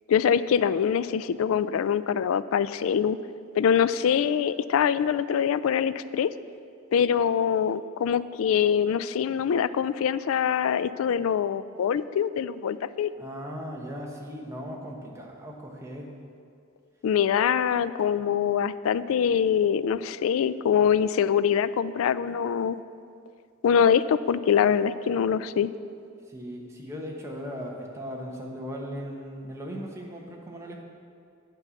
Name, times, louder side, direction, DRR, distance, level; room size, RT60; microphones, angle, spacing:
voice 1, 0.1-3.2 3.5-6.3 6.9-13.1 17.0-22.8 23.6-25.7, left 8 dB, 80° left, 16 dB, 0.3 m, -24 dB
voice 2, 13.2-16.2 26.3-30.8, equal, 15° right, -1 dB, 1.1 m, -38 dB
9.1 x 5.4 x 7.0 m, 2.3 s
head